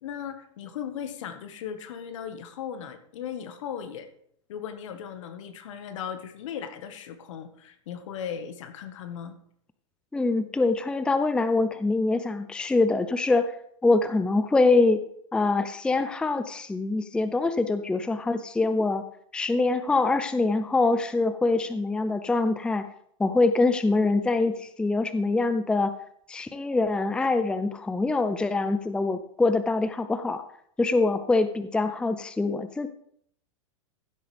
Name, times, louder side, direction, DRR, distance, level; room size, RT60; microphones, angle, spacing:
voice 1, 0.0-4.1 4.5-9.4, left 8 dB, 70° left, 9 dB, 1.5 m, -37 dB
voice 2, 10.1-13.5 13.8-15.0 15.3-19.0 19.3-22.9 23.2-25.9 26.3-30.4 30.8-32.9, left 3 dB, 5° left, 10 dB, 0.5 m, -24 dB
15.5 x 7.8 x 3.4 m, 0.68 s
hypercardioid pair, 120°, 17 cm